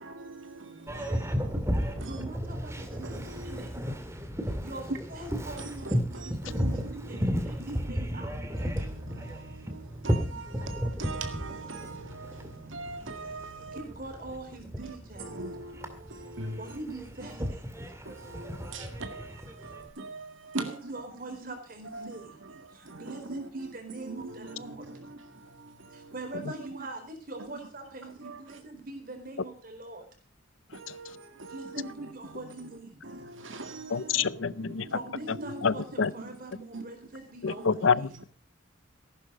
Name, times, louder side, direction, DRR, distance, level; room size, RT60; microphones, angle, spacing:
voice 1, 0.0-2.2 3.0-4.0 5.6-6.9 7.7-7.8 8.7-13.8 15.2-16.8 18.1-20.6 21.4-21.5 21.9-22.1 22.9-23.0 23.4-23.5 24.1-26.1 28.2-28.4 30.7-32.1 32.6-32.7 33.2-34.9 36.7-36.8 37.7-37.8, right 3 dB, 70° right, 2.0 m, -42 dB
Boat Water vehicle, 0.9-19.9, equal, 15° right, 2.0 m, -34 dB
voice 2, 2.0-3.7 4.4-8.3 13.7-15.4 16.6-17.6 20.6-22.4 22.7-24.9 25.9-30.0 31.4-33.0 34.9-38.0, right 2 dB, 45° right, 4.3 m, -43 dB
voice 3, 33.9-34.9 35.6-36.1 37.4-38.2, left 5 dB, 75° left, 0.6 m, -27 dB
15.0 x 11.5 x 5.2 m
head